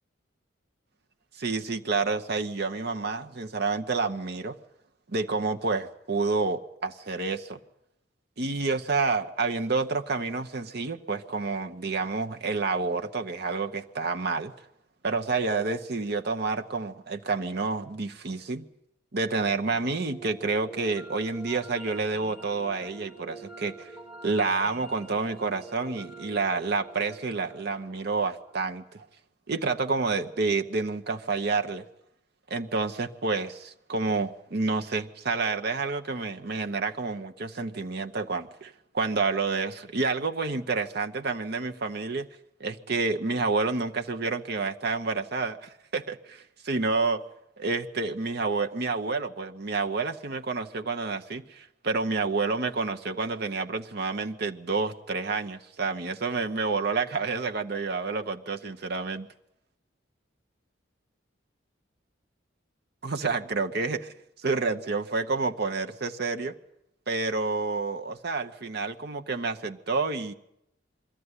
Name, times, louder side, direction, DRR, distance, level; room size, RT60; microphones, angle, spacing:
voice 1, 1.4-4.6 5.1-7.6 8.4-14.5 15.0-18.6 19.1-23.9 24.2-29.0 29.5-31.8 32.5-42.3 42.6-47.2 47.6-59.3 63.0-66.5 67.1-70.3, right 4 dB, 55° right, 5 dB, 0.9 m, -29 dB
sound 1, 19.5-28.6, right 3 dB, 5° right, 3.6 m, -46 dB
23.0 x 13.5 x 9.7 m, 0.82 s
head